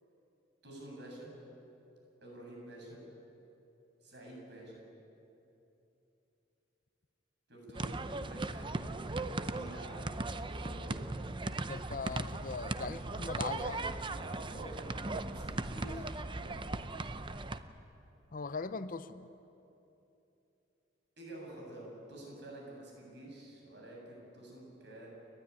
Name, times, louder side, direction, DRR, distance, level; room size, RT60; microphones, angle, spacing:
voice 1, 0.6-1.3 2.2-3.0 4.0-4.8 7.5-11.1 13.6-16.6 21.2-25.1, right 1 dB, 65° right, -1 dB, 7.8 m, -49 dB
sound 1, 7.7-17.6, right 2 dB, 25° right, 0.7 m, -38 dB
voice 2, 11.7-13.8 18.3-19.3, left 4 dB, 45° left, 13 dB, 0.7 m, -40 dB
30.0 x 12.5 x 9.8 m, 2.9 s
head